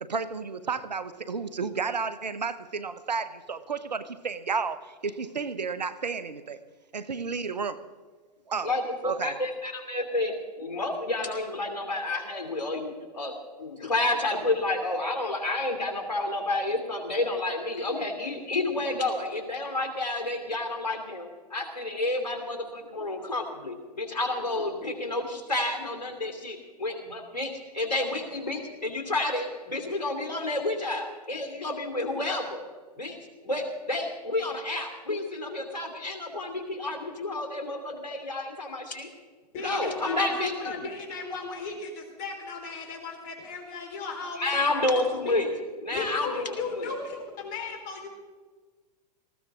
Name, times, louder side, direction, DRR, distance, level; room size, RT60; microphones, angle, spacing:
voice 1, 0.0-6.6 6.9-7.8 8.5-8.7 9.0-9.4, right 5 dB, 90° right, 14 dB, 1.0 m, -32 dB
voice 2, 8.6-13.3 13.6-32.6 33.0-33.2 33.4-39.1 39.6-40.8 44.4-45.5 45.8-46.9, left 2 dB, 90° left, 4 dB, 2.8 m, -30 dB
voice 3, 39.5-45.0 45.2-45.4 45.9-48.1, left 4 dB, 45° left, 2 dB, 4.3 m, -36 dB
19.0 x 15.5 x 3.7 m, 1.4 s
hypercardioid pair, 110°, 21 cm